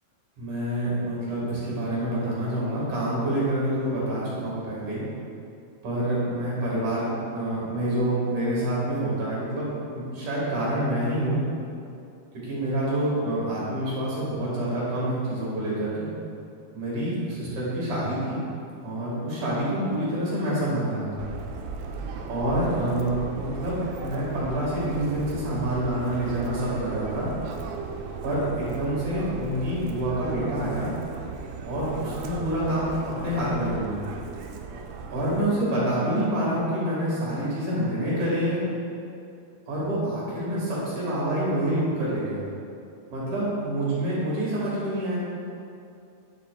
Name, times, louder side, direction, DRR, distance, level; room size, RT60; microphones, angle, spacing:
voice 1, 0.4-5.0 5.8-11.4 12.3-16.1 16.7-18.4 18.8-21.3 22.3-27.3 28.2-30.9 31.6-34.0 35.1-38.6 39.7-42.4 43.1-45.2, right 1 dB, 55° right, -7 dB, 2.9 m, -27 dB
Subway metro underground, 21.2-35.4, right 5 dB, 80° right, 2.3 m, -37 dB
9.3 x 7.5 x 2.3 m, 2.6 s
omnidirectional pair, 4.5 m